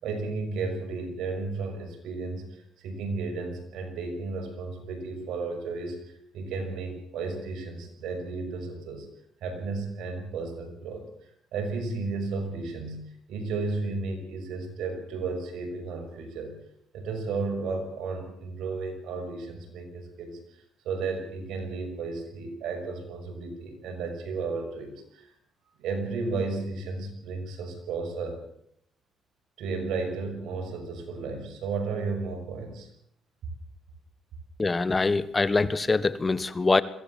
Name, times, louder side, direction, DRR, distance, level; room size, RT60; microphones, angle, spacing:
voice 1, 0.0-9.1 9.4-11.0 11.5-16.5 16.9-20.4 20.8-25.3 25.8-28.4 29.6-32.9, right 4 dB, 80° right, 4 dB, 6.2 m, -33 dB
voice 2, 34.6-36.8, left 3 dB, 25° left, 15 dB, 1.3 m, -24 dB
22.5 x 16.5 x 7.4 m, 0.69 s
cardioid pair, 90°, 0 cm